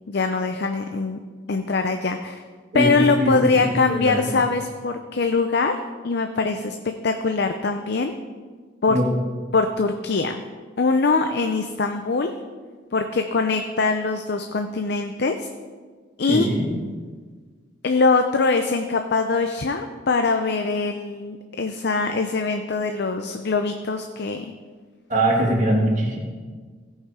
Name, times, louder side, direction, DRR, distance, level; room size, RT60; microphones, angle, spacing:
voice 1, 0.1-1.2 1.5-2.4 2.7-5.8 6.0-6.8 7.0-8.1 8.8-9.0 9.5-10.4 10.8-12.3 12.9-15.5 16.2-16.5 17.8-24.5, left 4 dB, 55° left, 6 dB, 0.5 m, -22 dB
voice 2, 2.7-3.6 3.9-4.3 8.9-9.1 16.3-16.7 25.1-26.2, right 1 dB, 40° right, -2 dB, 2.0 m, -22 dB
16.5 x 5.7 x 4.9 m, 1.5 s
head